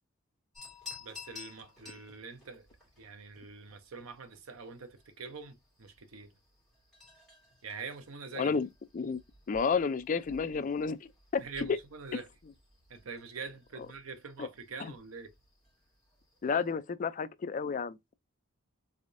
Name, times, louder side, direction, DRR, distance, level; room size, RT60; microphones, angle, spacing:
sound 1, 0.5-16.7, left 4 dB, ahead, 2.5 m, -55 dB
voice 1, 1.0-2.7 3.0-6.3 7.6-8.5 11.4-12.3 12.9-15.3, right 4 dB, 75° right, 0.8 m, -44 dB
voice 2, 8.3-8.7 8.9-9.2 9.5-11.8 14.4-14.5 14.8-14.9 16.4-18.0, left 5 dB, 35° left, 0.3 m, -31 dB
3.5 x 3.4 x 2.5 m
head